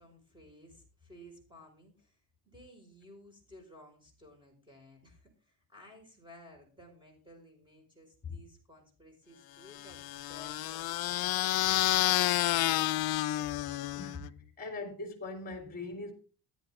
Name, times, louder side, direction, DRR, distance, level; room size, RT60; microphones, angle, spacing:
voice 1, 0.0-12.3, left 1 dB, 10° right, 5.1 m, -56 dB
sound 1, 9.7-14.3, left 15 dB, 50° left, 0.5 m, -30 dB
voice 2, 13.9-14.3 14.6-16.1, left 2 dB, 20° left, 3.5 m, -41 dB
15.0 x 10.0 x 3.7 m
cardioid pair, 140°, 47 cm